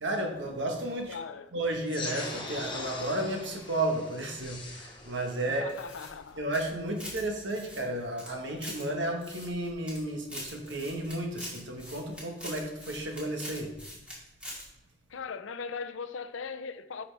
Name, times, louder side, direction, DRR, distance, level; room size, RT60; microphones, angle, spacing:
voice 1, 0.0-1.2 1.5-5.8 6.4-13.8, right 1 dB, 70° right, 1.4 m, -33 dB
voice 2, 1.1-1.5 5.5-6.5 15.1-17.0, left 5 dB, 90° left, 0.5 m, -39 dB
sound 1, 1.9-6.9, left 3 dB, 25° left, 1.0 m, -42 dB
sound 2, 5.7-7.2 7.5-8.8 9.2-10.0 10.3-14.1 14.4-14.6, left 1 dB, 5° right, 2.2 m, -43 dB
10.0 x 5.7 x 3.4 m
head